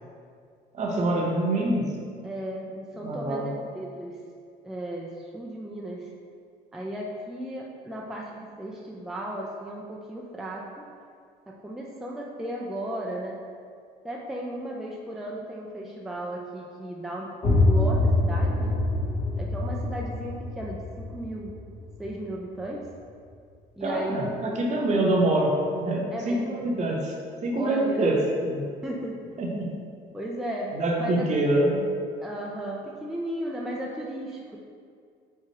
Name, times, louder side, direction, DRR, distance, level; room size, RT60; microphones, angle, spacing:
voice 1, 0.7-1.9 3.0-3.5 23.8-27.1 27.4-28.7 29.4-29.7 30.7-31.8, right 1 dB, 45° right, -1 dB, 0.8 m, -25 dB
voice 2, 2.2-4.2 4.6-6.1 6.7-10.7 11.5-13.3 14.0-17.3 17.6-18.8 19.4-21.6 22.0-22.8 23.7-24.6 26.1-26.6 27.5-28.1 28.8-29.2 30.1-30.7 31.0-31.3 32.2-34.6, right 1 dB, ahead, -3 dB, 0.4 m, -35 dB
sound 1, 17.4-23.0, left 2 dB, 35° left, 0.8 m, -25 dB
4.5 x 3.5 x 2.9 m, 2.2 s
cardioid pair, 110°, 17 cm